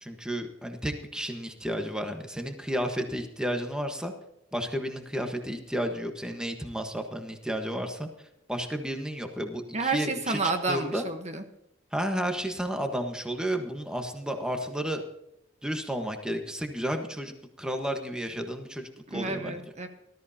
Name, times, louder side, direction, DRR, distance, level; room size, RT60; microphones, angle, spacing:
voice 1, 0.0-4.1 4.5-8.1 8.5-10.4 10.7-11.0 11.9-15.0 15.6-17.3 17.6-19.6, equal, 5° right, 4 dB, 1.4 m, -32 dB
voice 2, 9.7-11.4 19.1-19.9, right 3 dB, 35° right, 6 dB, 1.2 m, -30 dB
19.0 x 13.5 x 2.9 m, 0.80 s
head